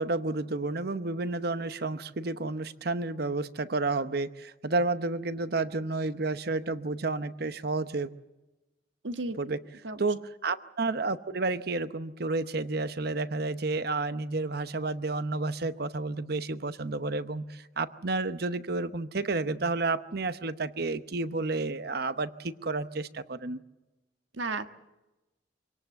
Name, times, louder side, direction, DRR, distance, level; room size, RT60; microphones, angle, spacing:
voice 1, 0.0-8.1 9.4-9.6 10.0-23.6, right 3 dB, 55° right, 12 dB, 0.9 m, -31 dB
voice 2, 9.0-9.4 9.8-10.1 24.3-24.7, right 2 dB, 85° right, 8 dB, 1.4 m, -33 dB
25.5 x 18.5 x 8.0 m, 1.0 s
head